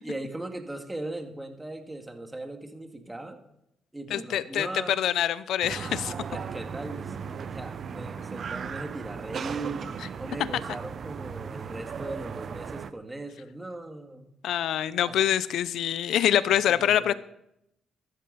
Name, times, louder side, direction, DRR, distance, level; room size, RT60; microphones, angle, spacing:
voice 1, 0.0-3.4 3.9-5.0 6.3-9.9 10.2-14.3 15.0-15.2 16.5-17.1, right 2 dB, 15° right, 4 dB, 2.2 m, -38 dB
voice 2, 4.1-4.7 5.0-6.1 14.4-17.1, left 11 dB, 75° left, 16 dB, 0.7 m, -25 dB
sound 1, 5.6-12.9, right 6 dB, 50° right, 0.7 m, -37 dB
14.5 x 13.0 x 4.2 m, 0.79 s
cardioid pair, 90°, 0 cm